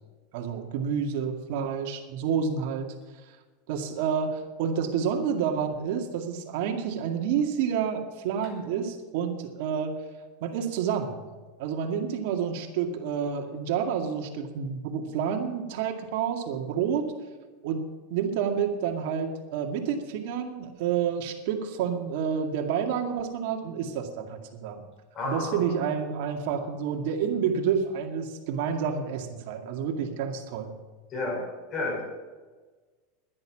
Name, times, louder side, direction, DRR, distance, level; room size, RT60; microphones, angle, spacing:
voice 1, 0.3-3.0 3.7-10.0 10.4-11.2 11.6-17.1 17.6-24.9 25.2-30.7, right 7 dB, 65° right, 4 dB, 2.1 m, -29 dB
voice 2, 25.1-25.7 31.1-32.0, left 2 dB, 40° left, 0 dB, 5.6 m, -31 dB
11.0 x 11.0 x 7.3 m, 1.4 s
hypercardioid pair, 105°, 0 cm